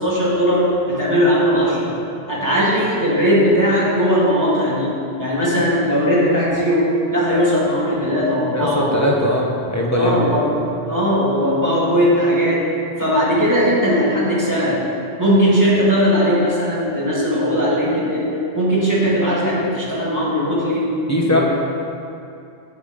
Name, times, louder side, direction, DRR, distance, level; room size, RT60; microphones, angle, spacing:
voice 1, 0.0-1.9 2.3-4.9 5.2-9.2 10.0-10.5 10.9-12.7 13.0-14.8 15.2-18.3 18.5-20.9 21.2-21.4, equal, 15° right, -8 dB, 2.2 m, -18 dB
voice 2, 8.5-10.2 21.1-21.4, left 1 dB, 15° left, -2 dB, 1.0 m, -19 dB
10.5 x 7.8 x 3.8 m, 2.6 s
omnidirectional pair, 1.2 m